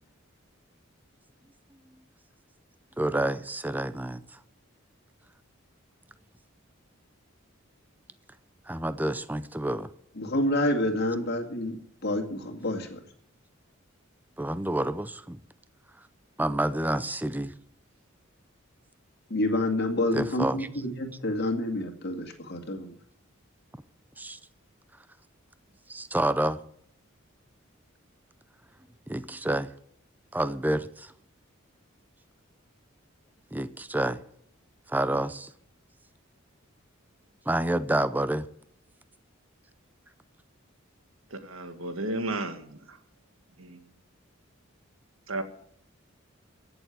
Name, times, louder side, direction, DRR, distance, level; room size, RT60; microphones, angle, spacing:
voice 1, 3.0-4.4 8.7-9.9 14.4-15.4 16.4-17.5 20.1-20.7 24.2-24.4 25.9-26.6 29.1-29.7 30.3-31.1 33.5-34.2 34.9-35.5 37.5-38.5, right 1 dB, 10° right, 13 dB, 0.6 m, -28 dB
voice 2, 10.2-13.0 19.3-22.9, left 1 dB, 50° left, 4 dB, 2.3 m, -28 dB
voice 3, 41.3-43.0 43.6-43.8 45.3-45.4, right 2 dB, 85° right, 8 dB, 1.8 m, -33 dB
16.0 x 7.0 x 9.2 m, 0.67 s
head